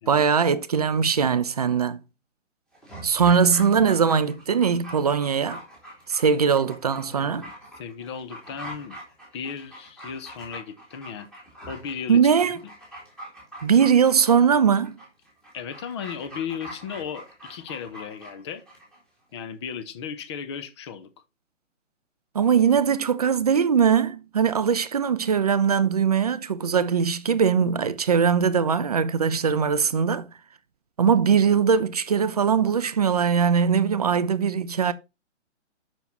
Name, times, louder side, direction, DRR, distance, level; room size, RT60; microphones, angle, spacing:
voice 1, 0.1-2.0 3.0-5.6 6.1-7.5 12.1-12.6 13.6-14.9 22.3-30.3 31.0-34.9, right 6 dB, 35° right, 0.4 m, -21 dB
Dog, 2.7-19.0 19.3-19.4, right 1 dB, ahead, 3.0 m, -43 dB
voice 2, 6.9-9.0 9.3-11.3 11.7-12.3 15.5-18.6 19.3-21.1, left 7 dB, 20° left, 0.6 m, -36 dB
6.8 x 6.0 x 4.0 m
figure-of-eight pair, 140°, 38 cm